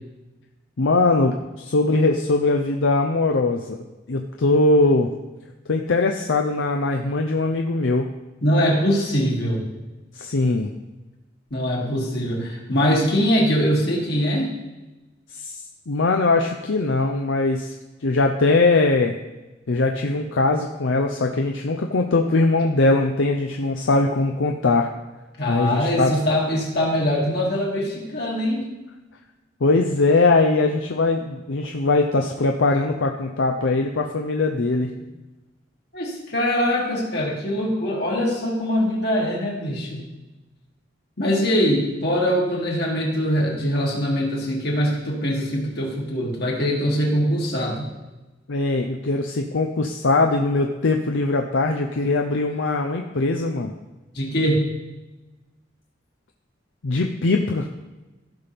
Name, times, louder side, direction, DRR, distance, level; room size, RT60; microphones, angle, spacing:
voice 1, 0.8-3.8 4.1-5.1 5.7-8.1 10.2-10.7 15.3-15.6 15.9-17.7 18.0-19.1 19.7-24.9 25.5-26.1 29.6-34.9 48.5-53.7 56.8-57.7, left 3 dB, 80° left, 3 dB, 0.6 m, -21 dB
voice 2, 8.4-9.6 11.5-14.5 25.4-28.6 35.9-40.0 41.2-47.9 54.1-54.6, equal, 60° left, -3 dB, 2.6 m, -22 dB
15.0 x 5.8 x 3.5 m, 1.1 s
head